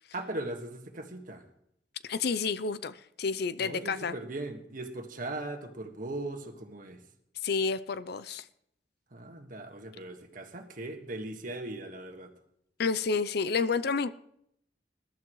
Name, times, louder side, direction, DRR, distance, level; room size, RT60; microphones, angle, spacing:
voice 1, 0.1-1.4 3.6-7.0 9.1-12.3, right 2 dB, 50° right, 1.7 m, -39 dB
voice 2, 2.0-4.1 7.4-8.4 12.8-14.2, left 5 dB, 65° left, 0.5 m, -30 dB
21.5 x 12.0 x 3.1 m
head